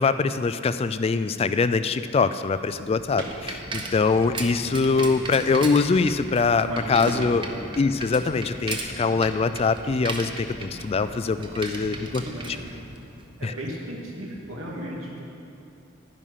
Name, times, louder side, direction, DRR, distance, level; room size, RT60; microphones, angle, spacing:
voice 1, 0.0-7.5 7.8-12.2 13.4-13.5, left 4 dB, 30° left, 12 dB, 0.3 m, -23 dB
Bicycle, 2.5-13.3, right 2 dB, 25° right, 0.9 m, -37 dB
sound 1, 3.2-3.4 3.8-4.5 5.0-5.3 7.1-7.3 7.6-8.0 9.1-9.3, right 2 dB, 65° right, 1.4 m, -39 dB
voice 2, 6.5-7.6 12.2-12.7 13.4-15.2, right 1 dB, 80° right, -2 dB, 2.4 m, -35 dB
11.5 x 10.0 x 5.6 m, 2.7 s
head